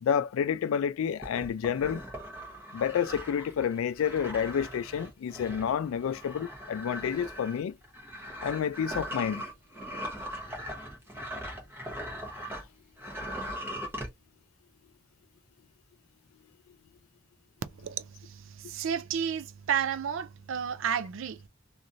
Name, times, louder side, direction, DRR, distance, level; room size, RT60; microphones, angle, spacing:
voice 1, 0.0-2.0 2.7-7.8 8.4-9.4, left 8 dB, 65° left, 0.3 m, -29 dB
sound 1, 1.2-12.7 13.0-14.1, equal, 10° right, 1.0 m, -40 dB
voice 2, 17.8-21.5, right 8 dB, 60° right, 0.4 m, -32 dB
3.0 x 2.5 x 2.5 m
head